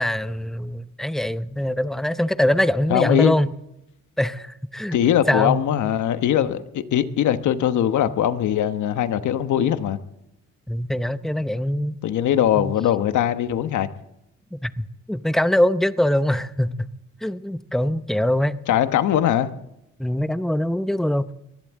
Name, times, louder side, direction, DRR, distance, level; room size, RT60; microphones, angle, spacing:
voice 1, 0.0-3.5 4.2-5.0 5.3-5.6 10.7-12.0 12.5-12.7 14.5-16.9 17.2-18.6 20.0-21.3, left 1 dB, ahead, 0.7 m, -23 dB
voice 2, 2.9-3.4 4.9-10.0 12.0-13.9 18.7-19.5, left 10 dB, 75° left, 1.2 m, -21 dB
22.5 x 16.5 x 3.7 m
cardioid pair, 90°, 30 cm